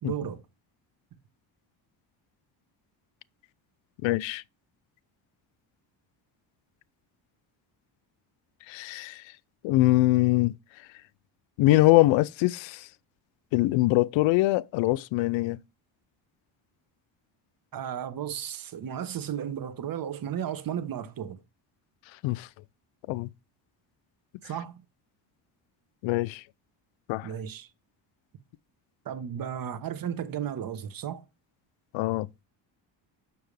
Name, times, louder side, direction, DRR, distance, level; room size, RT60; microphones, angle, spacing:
voice 1, 0.0-0.4 17.7-21.4 24.4-24.8 27.2-27.7 29.0-31.2, right 9 dB, 50° right, 1.2 m, -34 dB
voice 2, 4.0-4.4 8.7-9.2 9.6-10.5 11.6-12.9 13.5-15.6 22.2-22.5 23.1-23.3 26.0-26.4 27.1-27.3 31.9-32.3, left 18 dB, 85° left, 0.5 m, -23 dB
7.0 x 6.4 x 3.3 m
cardioid pair, 110°, 45 cm